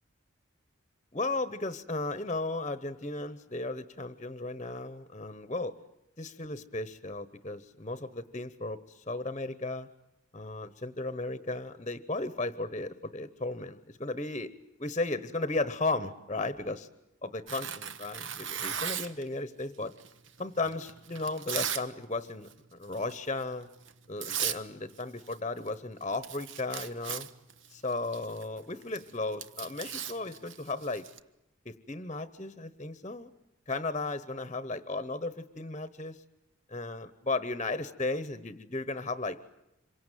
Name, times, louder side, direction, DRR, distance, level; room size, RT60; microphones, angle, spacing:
voice 1, 1.1-5.7 6.2-9.9 10.3-14.5 14.8-16.9 17.2-19.9 20.4-23.7 24.1-27.3 27.7-31.1 31.6-33.3 33.7-36.2 36.7-39.4, left 2 dB, 30° left, 14 dB, 1.0 m, -35 dB
Tearing, 17.5-19.2 20.0-21.9 22.2-22.5 22.9-23.2 23.9-24.0 24.2-24.6 24.9-25.4 25.7-25.8 26.0-31.2, right 8 dB, 65° right, 1.1 m, -37 dB
27.0 x 24.0 x 9.2 m, 0.87 s
head